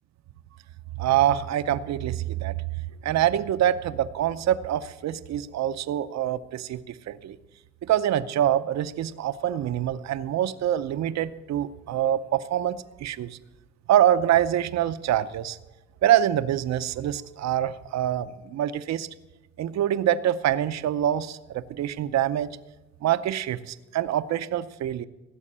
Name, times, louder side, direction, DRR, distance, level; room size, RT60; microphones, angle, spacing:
voice 1, 1.0-2.6 3.0-7.4 7.8-13.4 13.9-15.6 16.0-19.1 19.6-22.6 23.0-25.1, right 11 dB, 60° right, 14 dB, 0.7 m, -25 dB
15.5 x 6.4 x 8.6 m, 1.0 s
cardioid pair, 90°, 30 cm